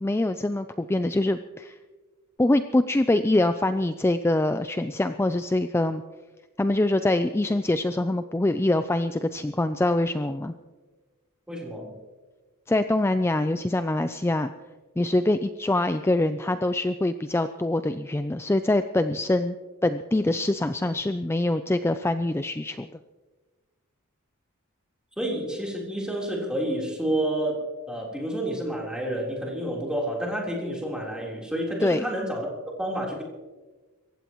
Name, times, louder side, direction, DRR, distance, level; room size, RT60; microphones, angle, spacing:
voice 1, 0.0-1.8 2.4-6.0 6.6-10.5 12.7-14.5 15.0-19.6 19.8-22.9 31.8-32.0, left 1 dB, 10° left, 9 dB, 0.4 m, -24 dB
voice 2, 11.5-11.9 25.2-27.6 27.9-32.5 32.8-33.2, right 1 dB, 5° right, -2 dB, 3.7 m, -29 dB
26.5 x 15.0 x 3.1 m, 1.3 s
head